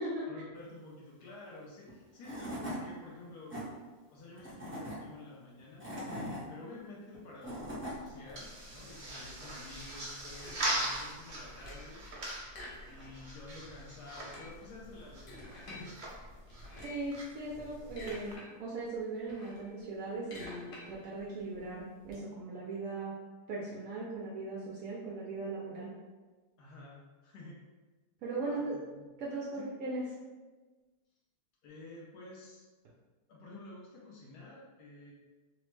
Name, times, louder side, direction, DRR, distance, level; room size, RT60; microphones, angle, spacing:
voice 1, 0.3-3.6 4.1-5.9 6.5-12.0 12.8-16.0 26.6-27.6 28.4-29.1 29.5-29.7 31.6-32.7 33.3-35.1, left 2 dB, 80° left, -4 dB, 1.2 m, -50 dB
Tools / Wood, 1.9-2.0 2.2-2.8 3.3-3.6 4.4-5.0 5.6-6.4 7.1-7.9, equal, 10° right, 0.7 m, -40 dB
sound 1, 7.4-18.3, right 1 dB, 85° right, 0.4 m, -41 dB
sound 2, 9.0-11.0 11.3-12.0 12.5-13.4 13.6-13.7 14.1-15.8 16.5-17.1 17.6-18.5 18.8-22.1, left 1 dB, 45° left, 0.7 m, -50 dB
voice 2, 16.8-18.3 18.6-23.1 23.5-25.9 28.2-28.7 29.2-30.1, right 3 dB, 70° right, -5 dB, 0.9 m, -38 dB
3.3 x 2.0 x 3.1 m, 1.3 s
omnidirectional pair, 1.7 m